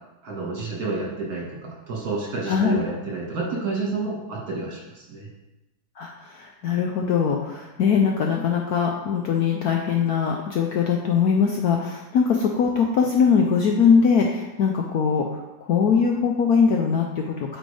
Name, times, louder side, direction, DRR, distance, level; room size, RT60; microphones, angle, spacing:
voice 1, 0.2-5.3, right 3 dB, 50° right, -3 dB, 2.1 m, -30 dB
voice 2, 2.5-2.8 6.0-17.6, left 6 dB, 70° left, 1 dB, 1.0 m, -21 dB
8.9 x 5.2 x 3.3 m, 0.99 s
omnidirectional pair, 2.1 m